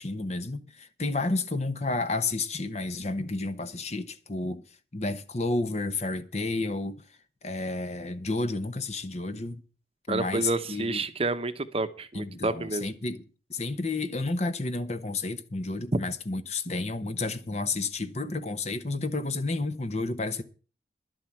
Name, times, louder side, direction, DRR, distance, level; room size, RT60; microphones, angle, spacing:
voice 1, 0.0-4.6 4.9-7.0 7.4-9.6 10.1-11.0 12.1-13.2 13.5-20.4, left 3 dB, 40° left, 1.0 m, -31 dB
voice 2, 10.1-12.9, right 3 dB, 35° right, 0.9 m, -29 dB
12.0 x 7.6 x 7.7 m
head